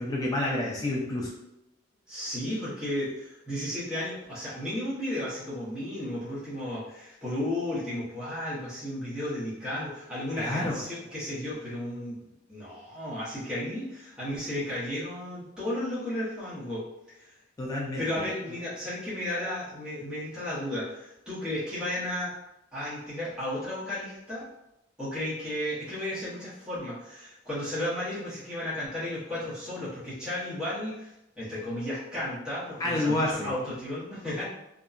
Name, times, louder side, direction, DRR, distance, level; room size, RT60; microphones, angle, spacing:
voice 1, 0.0-1.3 10.4-10.8 17.6-18.2 32.8-33.5, left 1 dB, 20° left, -3 dB, 0.3 m, -29 dB
voice 2, 2.1-12.2 12.5-16.9 17.2-17.3 18.0-22.3 22.7-24.4 25.0-34.4, left 1 dB, 5° right, -12 dB, 0.9 m, -34 dB
2.7 x 2.1 x 2.4 m, 0.87 s
head